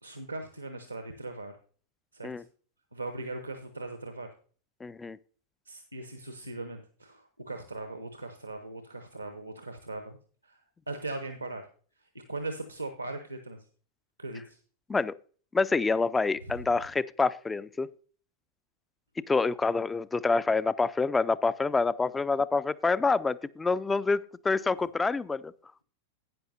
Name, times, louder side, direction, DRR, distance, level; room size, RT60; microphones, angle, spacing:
voice 1, 0.0-1.5 2.1-2.3 2.9-4.3 5.7-10.2 10.4-10.6 10.9-11.6 12.0-13.6 14.2-14.6 16.4-16.6, right 2 dB, 85° right, 8 dB, 0.7 m, -39 dB
voice 2, 4.8-5.2 14.9-15.2 15.5-17.9 19.3-25.5, left 4 dB, 10° left, 18 dB, 0.3 m, -27 dB
12.0 x 9.1 x 2.6 m, 0.43 s
figure-of-eight pair, 90°, 0 cm